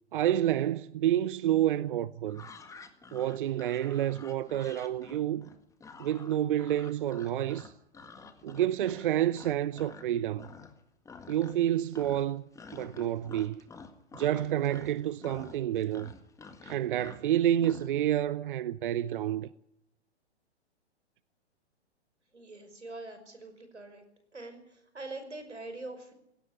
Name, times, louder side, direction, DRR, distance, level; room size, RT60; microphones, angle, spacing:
voice 1, 0.1-2.4 3.1-5.4 6.0-7.7 8.4-10.5 11.3-12.4 12.7-13.6 14.1-16.1 16.6-19.5, right 11 dB, 50° right, 0.7 m, -29 dB
sound 1, 2.3-10.1 10.4-10.8 11.0-11.7 11.9-17.9, left 4 dB, 10° left, 1.7 m, -49 dB
voice 2, 22.3-24.0 24.3-26.1, right 2 dB, 85° right, 5.7 m, -43 dB
18.0 x 17.5 x 9.7 m
figure-of-eight pair, 120°, 34 cm